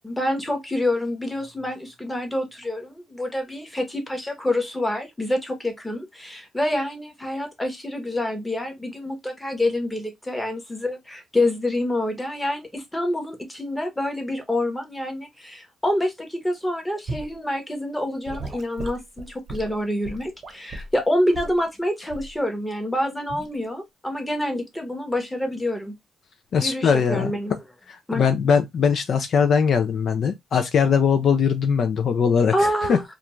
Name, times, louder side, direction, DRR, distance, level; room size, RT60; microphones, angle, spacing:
voice 1, 0.0-25.9 26.6-27.5 28.1-28.2 32.5-33.0, left 1 dB, 10° left, 0.9 m, -27 dB
Gurgling / Sink (filling or washing) / Liquid, 17.1-17.3 18.3-21.0 21.3-21.6 22.1-22.4 23.3-23.5, right 2 dB, 45° right, 0.8 m, -36 dB
voice 2, 26.5-27.3 27.9-33.0, left 6 dB, 60° left, 0.4 m, -21 dB
2.4 x 2.2 x 3.0 m
cardioid pair, 90°, 0 cm